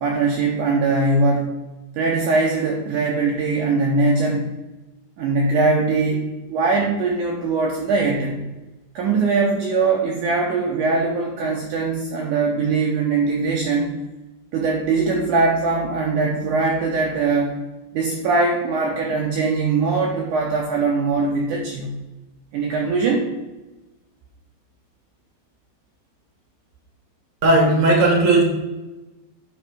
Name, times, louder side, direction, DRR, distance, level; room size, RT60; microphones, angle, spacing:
voice 1, 0.0-1.5 2.0-4.5 5.2-8.4 9.0-14.0 14.5-17.6 17.9-22.0 22.5-23.3, right 3 dB, 75° right, 0 dB, 1.9 m, -21 dB
voice 2, 27.4-28.4, right 2 dB, 50° right, 0 dB, 0.9 m, -15 dB
9.4 x 3.5 x 4.9 m, 1.1 s
omnidirectional pair, 4.4 m